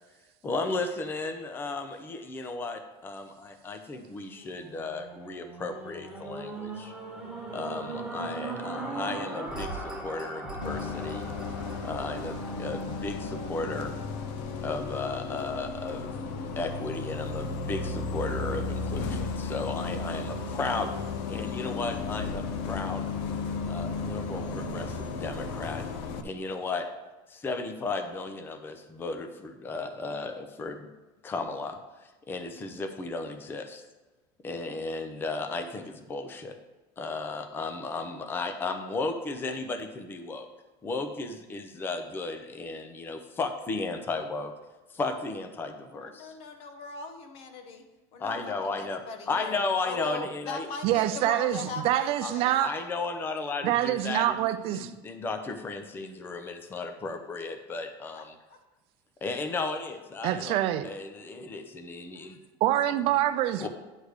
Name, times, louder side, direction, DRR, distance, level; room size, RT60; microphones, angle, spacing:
voice 1, 0.4-6.9 7.5-11.3 11.8-13.9 14.6-16.1 16.6-20.9 21.3-23.1 23.7-25.8 26.2-26.9 27.3-30.9 31.2-31.8 32.3-33.8 34.4-36.6 37.0-40.5 40.8-44.5 44.9-46.3 48.2-49.0 49.3-50.7 52.2-52.3 52.6-58.4 59.2-60.6 60.8-62.4 63.6-63.7, left 3 dB, 15° left, 7 dB, 0.5 m, -34 dB
sound 1, 4.4-14.7 15.3-15.4, right 2 dB, 5° right, 1.3 m, -39 dB
Bus, 10.6-26.2, left 4 dB, 75° left, 0.6 m, -34 dB
voice 2, 46.0-47.8 48.1-52.5 58.2-58.3 58.5-58.6, left 4 dB, 50° left, 5 dB, 1.0 m, -40 dB
voice 3, 50.8-52.7 53.6-54.9 60.2-60.9 62.6-63.7, right 13 dB, 50° right, 11 dB, 0.4 m, -26 dB
9.7 x 3.3 x 6.5 m, 1.2 s
cardioid pair, 155°, 13 cm